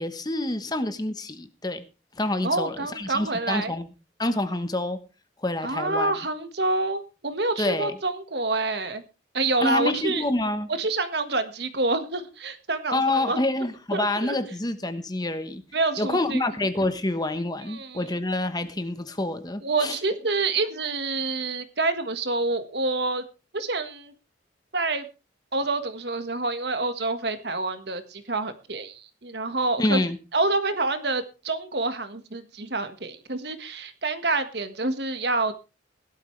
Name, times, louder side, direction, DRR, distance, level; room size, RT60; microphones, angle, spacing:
voice 1, 0.0-1.8 2.2-3.9 4.2-5.0 5.4-6.1 7.6-8.0 9.6-10.7 12.9-15.6 16.0-20.0 29.8-30.2, left 2 dB, 20° left, 10 dB, 1.1 m, -27 dB
voice 2, 2.4-3.7 5.6-9.0 9.3-10.2 10.8-13.4 13.9-14.4 15.7-16.4 17.7-18.0 19.6-23.3 23.5-24.1 24.7-25.0 25.5-30.0 30.3-35.5, right 3 dB, 60° right, 10 dB, 1.6 m, -27 dB
17.0 x 12.0 x 3.3 m, 0.31 s
head